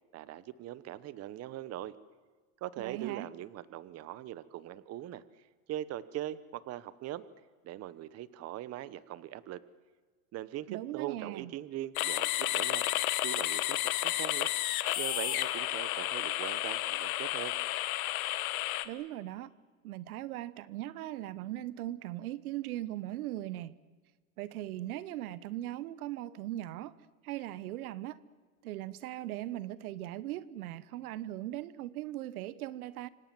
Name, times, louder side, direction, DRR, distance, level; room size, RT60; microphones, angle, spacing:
voice 1, 0.1-2.0 2.6-5.2 5.7-7.2 7.6-9.6 10.3-12.9 13.2-14.5 15.0-17.6, right 13 dB, 35° right, 1.2 m, -41 dB
voice 2, 2.8-3.3 10.7-11.5 18.8-19.5 19.8-23.7 24.4-26.9 27.2-28.2 28.6-33.1, right 14 dB, 75° right, 1.2 m, -39 dB
sound 1, 12.0-18.8, left 15 dB, 70° left, 1.9 m, -32 dB
27.5 x 25.5 x 7.7 m
supercardioid pair, 125°, 44 cm